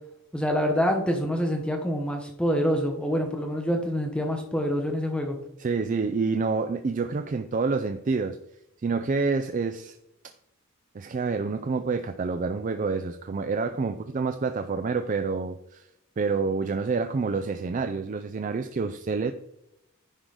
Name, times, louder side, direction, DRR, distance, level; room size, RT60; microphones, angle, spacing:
voice 1, 0.3-5.4, equal, 5° left, 2 dB, 0.9 m, -26 dB
voice 2, 5.6-8.4 8.8-10.0 10.2-10.3 10.9-15.9 16.2-19.3, right 4 dB, 40° right, 8 dB, 0.4 m, -28 dB
10.0 x 3.8 x 4.9 m, 0.85 s
head